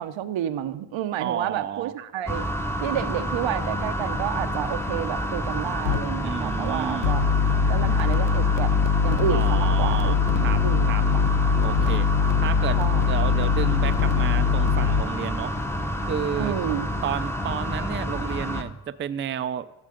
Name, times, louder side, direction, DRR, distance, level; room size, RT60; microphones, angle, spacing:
voice 1, 0.0-2.5 2.8-7.2 7.7-8.7 9.0-11.2 12.8-13.1 16.4-16.9, right 10 dB, 85° right, 10 dB, 0.8 m, -30 dB
voice 2, 1.2-1.9 6.2-7.2 9.3-10.6 10.9-11.0 11.6-12.1 12.4-12.8 13.0-15.5 16.1-16.6 17.0-19.7, right 9 dB, 30° right, 12 dB, 0.3 m, -31 dB
sound 1, 2.3-18.6, equal, 5° left, 0.7 m, -29 dB
sound 2, 5.9-6.0 7.0-15.0, left 6 dB, 70° left, 0.7 m, -22 dB
14.0 x 6.7 x 5.0 m, 1.0 s
wide cardioid pair, 140°, 45 cm